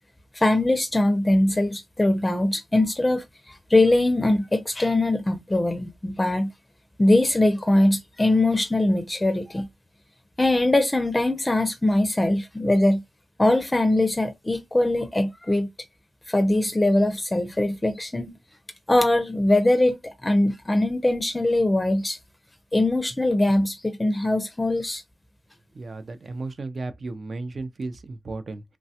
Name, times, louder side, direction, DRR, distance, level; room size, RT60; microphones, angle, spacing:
voice 1, 0.3-6.5 7.0-9.7 10.4-13.0 13.4-15.7 16.3-18.3 18.9-22.2 22.7-25.0, left 1 dB, 20° left, 0.5 m, -22 dB
voice 2, 25.7-28.6, right 3 dB, 55° right, 0.5 m, -34 dB
3.1 x 2.2 x 2.7 m
cardioid pair, 75°, 0 cm